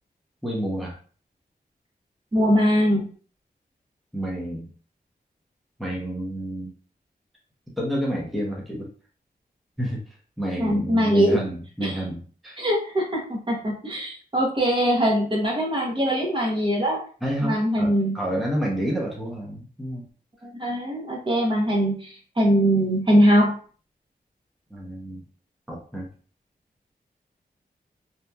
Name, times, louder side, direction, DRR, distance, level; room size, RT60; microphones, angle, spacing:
voice 1, 0.4-1.0 4.1-4.7 5.8-6.7 7.8-8.9 9.8-10.0 10.4-12.6 17.2-20.1 24.7-25.2 25.7-26.1, right 1 dB, ahead, -4 dB, 0.7 m, -29 dB
voice 2, 2.3-3.1 10.6-11.4 11.8-12.0 12.6-17.0 17.4-18.1 20.4-23.6, equal, 30° right, -2 dB, 0.8 m, -22 dB
2.8 x 2.3 x 2.2 m, 0.42 s
wide cardioid pair, 100°, 16 cm